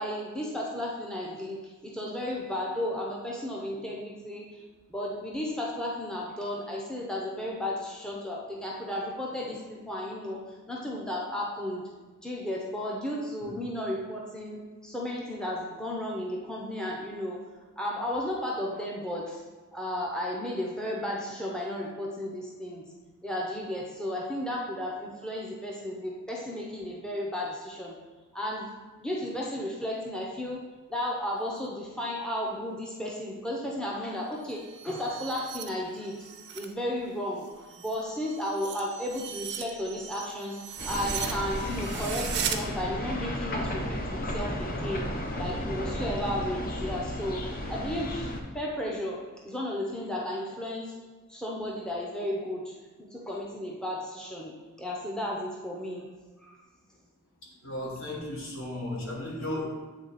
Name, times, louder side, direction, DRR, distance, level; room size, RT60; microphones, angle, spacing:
voice 1, 0.0-4.6 4.9-11.8 12.2-17.5 17.8-19.4 19.7-22.9 23.2-28.0 28.3-28.7 29.0-36.2 36.5-37.5 37.8-45.0 45.4-48.3 48.5-50.9 51.3-54.5 54.8-56.1 56.4-56.6, left 1 dB, 5° left, -3 dB, 0.6 m, -34 dB
sound 1, 34.3-36.7 37.1-42.6, right 9 dB, 55° right, 0.5 m, -38 dB
sound 2, 40.8-48.4, left 1 dB, 40° left, 0.6 m, -33 dB
voice 2, 57.6-59.6, left 1 dB, 70° left, -3 dB, 1.6 m, -35 dB
8.0 x 3.3 x 4.0 m, 1.3 s
head